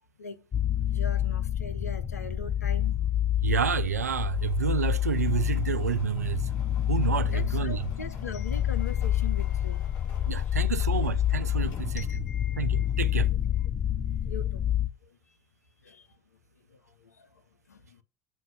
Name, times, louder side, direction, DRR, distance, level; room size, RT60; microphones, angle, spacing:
sound 1, 0.5-14.9, left 11 dB, 30° left, 0.9 m, -28 dB
voice 1, 0.9-3.0 7.2-10.6 12.0-13.4 14.2-14.7 15.0-15.2 15.8-16.1 16.7-17.4 17.7-18.0, left 4 dB, 85° left, 0.7 m, -42 dB
voice 2, 3.4-6.5 6.9-7.9 10.3-12.1 12.6-13.3, right 8 dB, 85° right, 0.4 m, -29 dB
sound 2, 4.1-13.4, left 5 dB, 50° left, 4.5 m, -53 dB
7.5 x 2.7 x 5.9 m
figure-of-eight pair, 65°, 8 cm